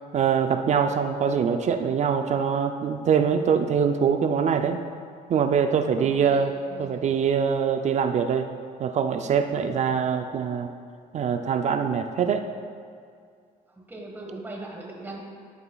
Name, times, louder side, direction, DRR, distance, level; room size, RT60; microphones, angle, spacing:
voice 1, 0.1-4.8 5.3-6.5 6.8-8.5 8.8-10.7 11.1-12.4, right 7 dB, 45° right, 7 dB, 0.4 m, -23 dB
voice 2, 6.0-7.1 13.8-15.2, right 2 dB, 10° right, -2 dB, 1.4 m, -40 dB
12.0 x 7.0 x 2.3 m, 2.2 s
cardioid pair, 110°, 17 cm